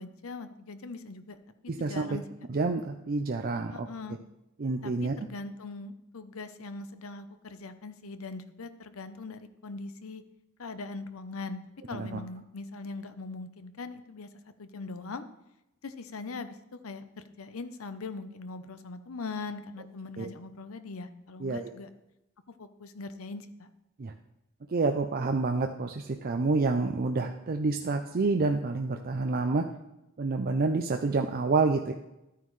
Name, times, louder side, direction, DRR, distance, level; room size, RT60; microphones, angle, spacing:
voice 1, 0.0-1.4 1.8-2.2 3.7-4.2 4.8-10.2 10.6-11.6 11.9-14.3 14.6-15.3 15.8-16.6 16.8-21.9 22.6-23.7, left 3 dB, 75° left, 11 dB, 0.7 m, -41 dB
voice 2, 1.7-2.2 2.5-3.9 4.6-5.2 11.9-12.2 20.2-20.3 21.4-21.7 24.0-24.1 24.7-29.7 30.2-31.9, right 3 dB, 45° right, 5 dB, 0.5 m, -28 dB
12.5 x 9.1 x 3.2 m, 0.90 s
head